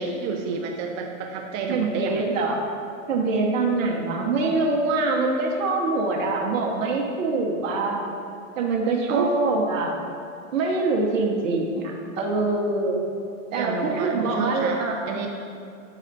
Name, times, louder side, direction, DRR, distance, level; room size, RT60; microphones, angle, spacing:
voice 1, 0.0-2.3 9.1-9.3 13.6-15.3, right 5 dB, 40° right, 3 dB, 0.6 m, -29 dB
voice 2, 1.7-2.6 3.1-8.1 8.6-10.0 10.5-13.0 13.5-15.2, right 3 dB, 75° right, 0 dB, 1.1 m, -24 dB
8.4 x 4.1 x 4.0 m, 2.5 s
hypercardioid pair, 110°, 39 cm